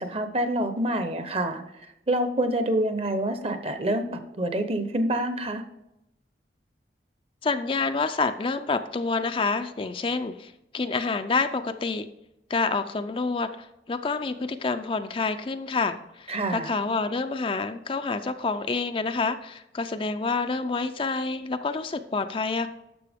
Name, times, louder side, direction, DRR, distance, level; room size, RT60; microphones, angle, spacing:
voice 1, 0.0-1.6 2.1-5.6 16.3-16.7, right 1 dB, 35° right, 8 dB, 0.8 m, -27 dB
voice 2, 7.4-12.1 12.5-22.7, left 4 dB, 30° left, 8 dB, 0.4 m, -28 dB
11.5 x 6.8 x 3.5 m, 0.87 s
head